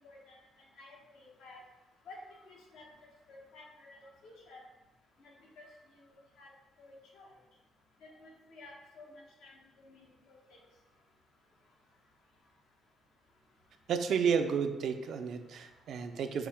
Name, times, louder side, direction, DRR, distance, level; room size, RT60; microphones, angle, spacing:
voice 1, 0.0-0.4 0.8-1.6 2.1-2.2 2.5-2.8 3.3-4.6 6.1-6.5 6.8-7.3 8.2-9.1 9.4-9.5 9.9-10.0, left 3 dB, 85° left, -1 dB, 0.8 m, -53 dB
voice 2, 13.9-16.5, right 6 dB, 70° right, 7 dB, 0.3 m, -31 dB
4.4 x 2.1 x 3.3 m, 1.1 s
cardioid pair, 90°, 0 cm